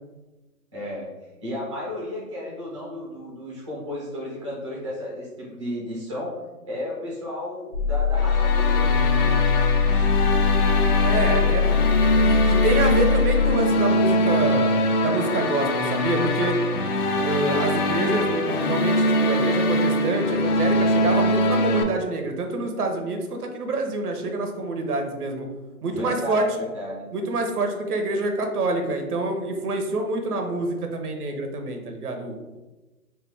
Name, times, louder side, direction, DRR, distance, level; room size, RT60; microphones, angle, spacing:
voice 1, 0.7-9.4 9.8-10.1 25.9-27.0, left 1 dB, 25° right, -6 dB, 0.4 m, -34 dB
sound 1, 7.7-13.5, left 6 dB, 60° left, 1.0 m, -21 dB
sound 2, 8.2-21.8, left 1 dB, 85° left, 0.6 m, -23 dB
voice 2, 11.0-11.8 12.2-14.7 15.0-16.6 17.2-25.5 25.8-26.5 27.1-32.6, right 2 dB, 80° right, 4 dB, 0.8 m, -26 dB
3.2 x 2.1 x 3.3 m, 1.1 s
hypercardioid pair, 155°, 45 cm